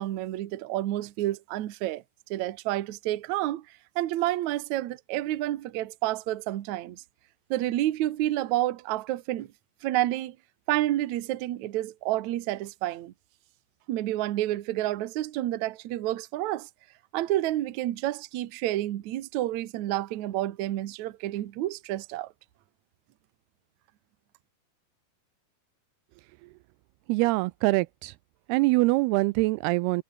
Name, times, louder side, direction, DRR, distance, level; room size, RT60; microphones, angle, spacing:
voice 1, 0.0-2.0 2.3-3.7 4.0-7.0 7.5-9.5 9.8-10.4 10.7-13.1 13.9-16.7 17.1-22.3, right 14 dB, 65° right, 1.9 m, -29 dB
voice 2, 27.1-28.1 28.5-30.0, right 22 dB, 85° right, 2.4 m, -24 dB
omnidirectional pair, 4.7 m